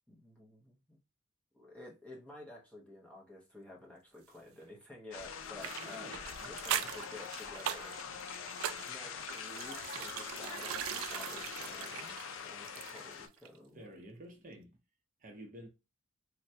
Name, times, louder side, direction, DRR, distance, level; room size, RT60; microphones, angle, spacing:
voice 1, 0.1-1.0 1.5-6.3 6.6-8.0 8.9-12.2 12.4-13.9, left 2 dB, 5° left, 0.7 m, -52 dB
sound 1, 5.1-13.3, left 7 dB, 70° left, 0.4 m, -44 dB
sound 2, 5.6-13.2 13.4-13.6, right 9 dB, 80° right, 0.3 m, -41 dB
voice 2, 5.8-6.9 13.7-14.8 15.2-15.7, right 1 dB, 40° right, 0.6 m, -51 dB
3.2 x 2.1 x 2.7 m
head